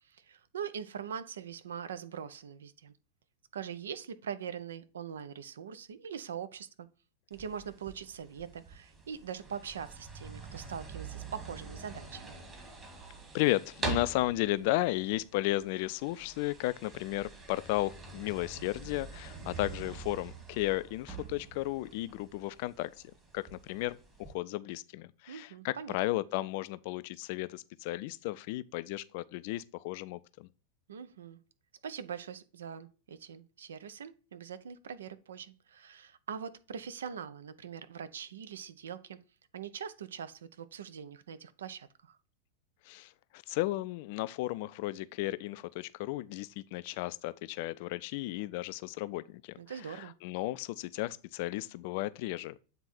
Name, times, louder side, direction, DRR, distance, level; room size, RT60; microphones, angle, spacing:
voice 1, 0.1-2.9 3.5-6.9 7.3-12.4 25.3-26.0 30.9-31.4 31.8-39.2 39.5-42.2 49.6-50.1, right 7 dB, 65° right, 0.5 m, -42 dB
sound 1, 7.3-24.3, right 4 dB, 20° right, 1.7 m, -45 dB
voice 2, 13.3-22.9 23.3-30.5 42.9-49.6 49.9-52.6, left 18 dB, 50° left, 0.3 m, -34 dB
8.0 x 3.7 x 4.2 m
figure-of-eight pair, 90°, 0 cm